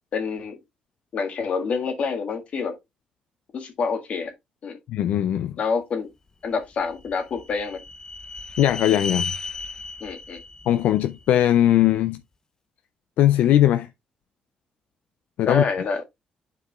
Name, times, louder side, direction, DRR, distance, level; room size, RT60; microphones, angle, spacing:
voice 1, 0.1-0.6 1.1-2.8 3.5-4.3 4.6-4.8 5.6-6.1 6.4-7.8 10.0-10.4 15.4-16.0, left 5 dB, 55° left, 1.7 m, -27 dB
voice 2, 4.9-5.5 8.6-9.3 10.7-12.2 13.2-13.9 15.4-15.6, left 12 dB, 85° left, 0.4 m, -19 dB
sound 1, 6.6-11.8, left 4 dB, 25° left, 0.8 m, -35 dB
11.0 x 4.6 x 2.3 m
cardioid pair, 100°, 2 cm